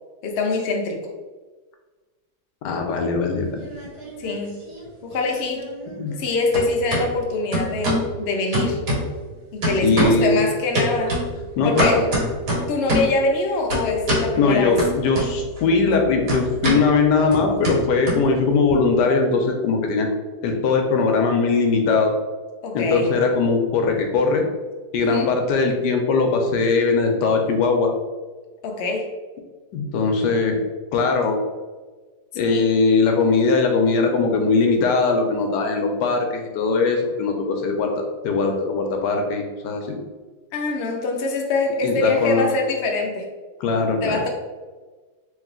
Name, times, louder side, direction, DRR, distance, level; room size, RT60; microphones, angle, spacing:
voice 1, 0.2-1.0 4.2-4.6 5.0-5.7 6.2-8.8 9.5-11.2 11.6-12.1 12.5-14.8 22.6-23.1 25.0-25.3 28.6-29.1 32.4-32.7 40.5-43.3 44.0-44.3, left 3 dB, 60° left, 2 dB, 0.7 m, -24 dB
voice 2, 2.6-3.6 6.0-6.1 9.8-10.3 11.6-12.0 14.4-20.1 20.4-22.1 22.7-24.4 24.9-27.9 29.7-30.6 30.9-31.4 32.3-40.0 41.8-42.4 43.6-44.2, left 4 dB, 90° left, 3 dB, 1.3 m, -20 dB
sound 1, 3.4-4.4 4.7-6.3 6.5-7.0 7.5-8.1 8.5-9.3 9.6-10.3 10.7-13.2 13.7-14.3 14.8-15.6 15.9-18.7, equal, 75° right, 1.8 m, -25 dB
3.2 x 3.1 x 3.6 m, 1.3 s
omnidirectional pair, 1.8 m